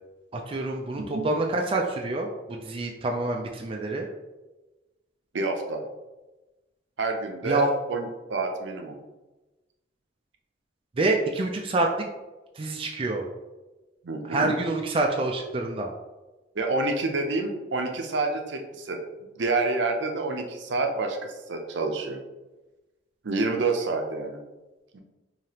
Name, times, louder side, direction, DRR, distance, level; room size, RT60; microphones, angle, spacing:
voice 1, 0.3-4.1 7.4-7.7 11.0-12.1 12.5-13.2 14.2-15.9, right 2 dB, 30° right, 1 dB, 0.4 m, -27 dB
voice 2, 0.9-1.3 5.3-5.8 7.0-9.0 14.0-14.5 16.6-19.0 19.4-22.2 23.2-24.4 24.9-25.0, right 3 dB, 70° right, 4 dB, 0.6 m, -28 dB
4.9 x 2.8 x 2.8 m, 1.1 s
head